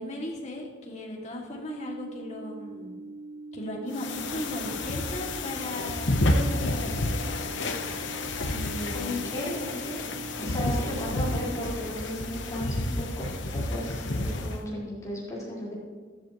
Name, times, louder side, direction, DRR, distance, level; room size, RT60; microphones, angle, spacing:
voice 1, 0.0-2.9 3.5-7.2 8.5-9.1 10.4-10.8, left 1 dB, 35° left, -2 dB, 2.2 m, -37 dB
sound 1, 1.6-11.6, right 2 dB, 85° right, 4.1 m, -42 dB
sound 2, 3.9-14.6, left 2 dB, 65° left, 1.0 m, -30 dB
voice 2, 8.9-10.1 10.4-15.7, left 1 dB, 15° left, -8 dB, 4.3 m, -35 dB
13.5 x 13.0 x 3.1 m, 1.5 s
head